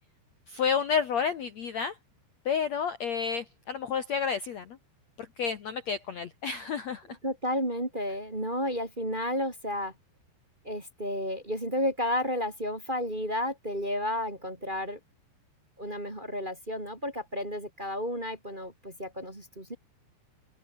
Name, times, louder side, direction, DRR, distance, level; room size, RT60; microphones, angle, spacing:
voice 1, 0.5-2.0 2.4-4.8 5.2-7.2, left 6 dB, 80° left, 1.5 m, -30 dB
voice 2, 7.2-9.9 10.6-15.0 15.8-19.7, left 1 dB, 15° right, 2.1 m, -32 dB
open air
omnidirectional pair, 5.3 m